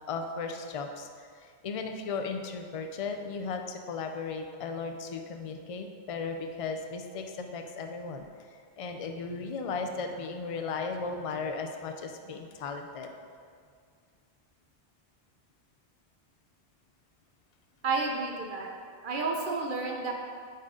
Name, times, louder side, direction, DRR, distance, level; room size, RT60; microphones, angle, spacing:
voice 1, 0.1-13.1, left 4 dB, 45° left, 5 dB, 0.4 m, -36 dB
voice 2, 17.8-18.7 19.0-20.1, right 4 dB, 50° right, 1 dB, 0.9 m, -31 dB
9.6 x 4.0 x 3.7 m, 2.1 s
omnidirectional pair, 1.2 m